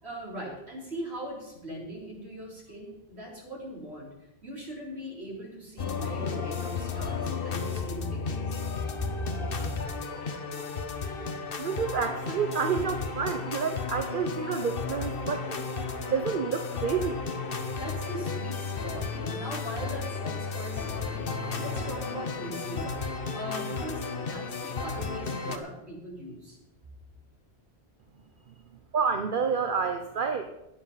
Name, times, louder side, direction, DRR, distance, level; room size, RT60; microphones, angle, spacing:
voice 1, 0.0-4.1 4.4-8.6 17.8-23.0 23.3-26.6, equal, 80° right, -4 dB, 4.4 m, -40 dB
sound 1, 5.8-25.6, left 4 dB, 60° left, 1.2 m, -33 dB
voice 2, 11.6-15.7 16.1-17.2 28.9-30.5, right 6 dB, 55° right, 6 dB, 0.9 m, -29 dB
12.5 x 10.0 x 5.7 m, 0.89 s
omnidirectional pair, 1.1 m